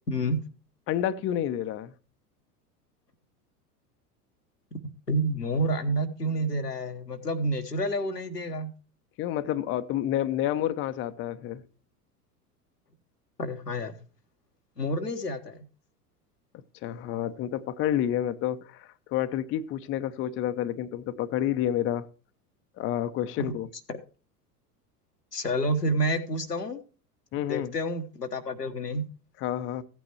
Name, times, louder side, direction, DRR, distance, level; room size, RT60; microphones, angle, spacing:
voice 1, 0.1-0.4 4.7-4.8 5.1-8.7 13.4-14.0 14.8-15.7 23.4-23.5 23.9-24.0 25.3-26.8 27.5-29.1, right 1 dB, 85° left, 1.2 m, -29 dB
voice 2, 0.9-1.9 9.2-11.6 16.8-22.1 22.8-23.7 27.3-27.7 29.4-29.8, left 11 dB, 25° left, 0.7 m, -29 dB
15.0 x 9.0 x 3.0 m
figure-of-eight pair, 80°, 46 cm